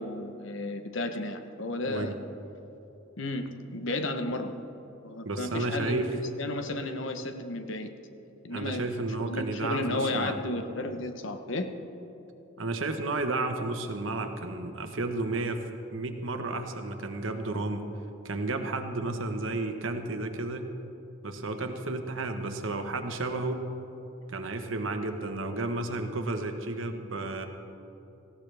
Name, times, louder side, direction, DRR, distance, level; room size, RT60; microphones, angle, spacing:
voice 1, 0.0-2.1 3.2-4.5 5.0-6.1 6.4-7.9 8.4-8.8 9.3-11.7, left 2 dB, 70° left, 7 dB, 1.0 m, -33 dB
voice 2, 1.9-2.2 5.2-6.1 8.5-10.4 12.6-15.6 15.9-17.9 18.2-20.7 21.2-23.6 24.3-27.5, right 2 dB, 75° right, 6 dB, 1.1 m, -32 dB
18.5 x 15.5 x 3.4 m, 2.9 s
head